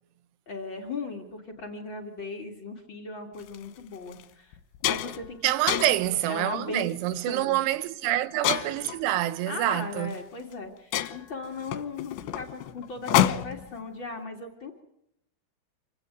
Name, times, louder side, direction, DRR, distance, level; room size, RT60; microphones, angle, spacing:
voice 1, 0.4-4.6 4.8-5.5 6.2-6.9 7.3-7.6 9.5-14.8, left 3 dB, 55° left, 1.3 m, -37 dB
sound 1, 3.4-3.6 4.1-4.2 4.5-5.3 5.7-6.1 6.8-7.1 8.4-9.0 10.1-10.2 10.5-10.6 10.9-13.7, left 12 dB, 75° left, 3.1 m, -28 dB
voice 2, 5.4-10.1, right 14 dB, 75° right, 3.3 m, -27 dB
27.5 x 16.0 x 9.2 m
omnidirectional pair, 5.8 m